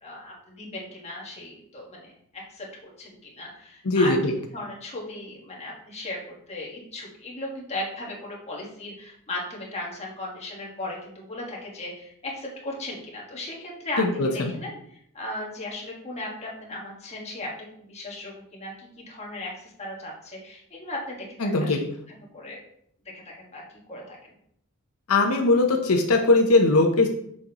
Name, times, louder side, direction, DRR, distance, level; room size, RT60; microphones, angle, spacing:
voice 1, 0.0-2.7 3.0-21.8 22.3-22.6 23.1-23.6 23.9-24.3, left 1 dB, 30° left, -3 dB, 1.5 m, -37 dB
voice 2, 3.8-4.2 14.0-14.5 21.4-21.8 25.1-27.1, left 2 dB, 85° left, 2 dB, 0.8 m, -20 dB
6.2 x 5.3 x 2.9 m, 0.70 s
head